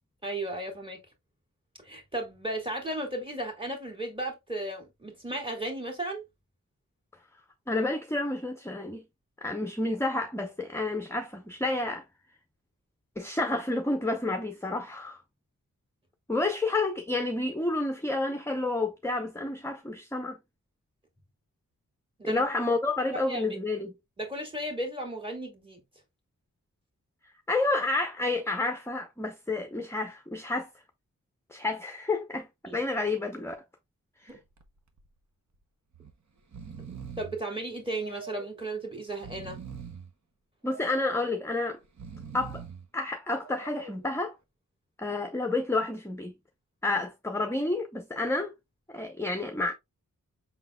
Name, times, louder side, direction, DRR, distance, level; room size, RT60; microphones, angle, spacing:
voice 1, 0.2-1.0 1.8-6.2 22.2-22.4 23.3-23.6 24.2-25.8 32.7-32.8 34.3-34.4 37.2-39.6, right 1 dB, 15° right, 2.1 m, -35 dB
voice 2, 7.7-9.0 9.4-12.0 13.2-15.2 16.3-20.4 22.3-23.9 27.5-30.7 31.5-32.5 32.7-33.5 34.2-34.3 40.6-41.8 42.3-42.6 42.9-44.4 45.0-46.3 46.8-48.5 48.9-49.7, left 2 dB, 10° left, 0.7 m, -30 dB
Breathing, 34.3-34.6 35.0-35.1 35.9-36.1 36.4-37.4 38.0-38.6 39.1-40.1 40.7-41.3 41.8-42.9 43.4-44.1, right 6 dB, 60° right, 0.9 m, -43 dB
5.6 x 3.9 x 2.2 m
wide cardioid pair, 75°, 32 cm